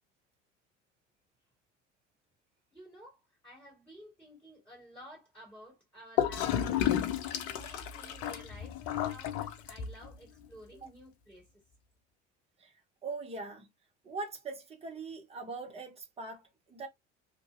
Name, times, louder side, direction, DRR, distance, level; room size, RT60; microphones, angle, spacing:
voice 1, 2.7-6.8 7.3-11.5, equal, 5° left, 2.2 m, -53 dB
Gurgling / Toilet flush, 6.2-10.1, left 10 dB, 45° left, 0.6 m, -32 dB
voice 2, 13.0-13.7 14.0-16.9, right 3 dB, 15° right, 0.9 m, -41 dB
2.7 x 2.7 x 2.5 m
figure-of-eight pair, 65°, 35 cm